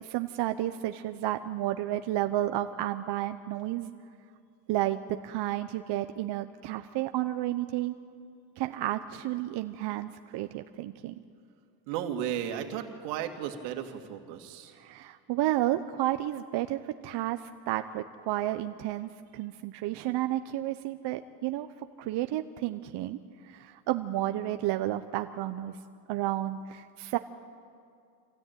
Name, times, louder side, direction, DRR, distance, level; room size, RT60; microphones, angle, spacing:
voice 1, 0.0-3.9 4.7-7.9 8.6-11.1 14.7-21.7 22.0-25.7 26.1-27.2, right 14 dB, 55° right, 8 dB, 0.9 m, -31 dB
voice 2, 11.9-14.7, right 9 dB, 90° right, 5 dB, 2.4 m, -34 dB
26.0 x 16.5 x 9.3 m, 2.3 s
supercardioid pair, 110°, 50 cm